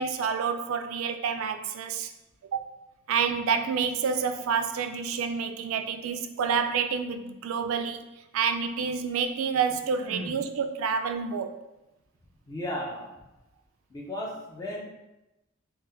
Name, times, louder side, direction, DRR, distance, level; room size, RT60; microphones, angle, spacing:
voice 1, 0.0-2.1 2.5-2.6 3.1-8.1 8.3-11.6, right 6 dB, 85° right, 8 dB, 0.3 m, -28 dB
voice 2, 12.5-13.1 13.9-14.8, left 1 dB, 20° left, -2 dB, 0.5 m, -35 dB
3.3 x 2.1 x 3.3 m, 0.97 s
head